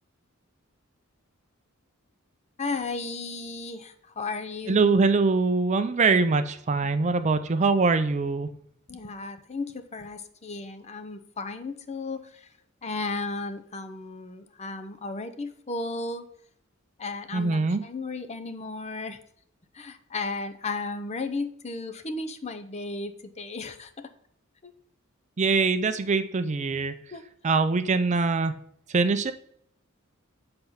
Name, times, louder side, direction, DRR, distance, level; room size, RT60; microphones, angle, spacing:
voice 1, 2.6-5.0 8.9-12.5 12.8-16.3 17.0-19.2 19.7-24.1 24.6-24.7 27.1-27.3, left 3 dB, 30° left, 8 dB, 0.7 m, -34 dB
voice 2, 4.7-8.5 17.3-17.8 25.4-26.9 27.4-28.5 28.9-29.3, right 4 dB, 35° right, 10 dB, 0.5 m, -23 dB
7.7 x 4.4 x 5.6 m, 0.67 s
head